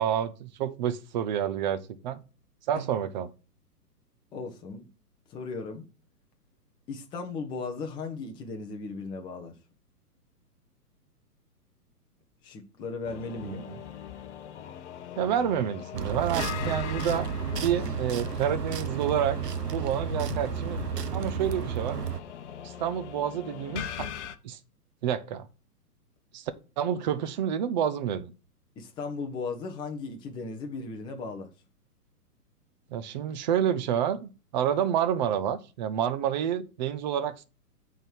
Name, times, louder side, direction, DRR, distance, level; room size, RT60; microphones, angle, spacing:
voice 1, 0.0-2.2 2.7-3.3 13.4-13.8 15.2-17.3 17.6-19.4 19.7-20.8 21.1-22.0 22.6-24.1 24.4-24.6 25.0-25.5 26.3-28.3 32.9-37.4, right 9 dB, 30° right, 0.6 m, -29 dB
voice 2, 4.3-4.9 5.3-5.9 6.9-9.6 12.4-13.6 28.8-31.5, left 4 dB, 10° left, 0.7 m, -36 dB
sound 1, 13.0-24.4, left 8 dB, 45° left, 0.9 m, -40 dB
sound 2, 15.9-22.2, right 7 dB, 85° right, 0.9 m, -32 dB
8.9 x 3.7 x 6.1 m
hypercardioid pair, 125°, 47 cm